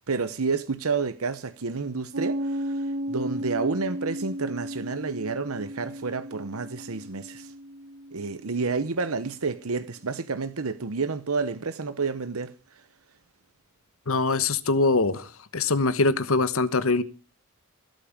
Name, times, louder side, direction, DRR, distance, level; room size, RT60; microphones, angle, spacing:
voice 1, 0.1-7.5 8.1-12.5, right 4 dB, 80° right, 0.9 m, -30 dB
Piano, 2.1-9.4, equal, 55° right, 1.2 m, -35 dB
voice 2, 14.1-15.2 15.5-17.0, left 3 dB, 70° left, 1.1 m, -23 dB
16.5 x 8.8 x 7.3 m
head